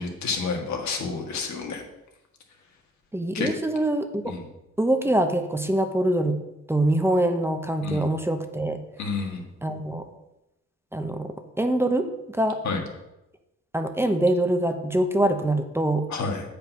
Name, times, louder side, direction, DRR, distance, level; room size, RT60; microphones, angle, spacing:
voice 1, 0.0-1.8 3.3-3.5 4.3-4.4 7.8-8.1 9.0-9.4 12.6-12.8 16.1-16.4, left 4 dB, 65° left, 2 dB, 1.9 m, -29 dB
voice 2, 3.1-4.3 4.8-6.4 6.7-8.8 9.6-10.1 10.9-12.6 13.7-16.1, right 1 dB, 10° right, 6 dB, 0.9 m, -24 dB
7.8 x 5.2 x 5.9 m, 0.93 s
cardioid pair, 90°, 30 cm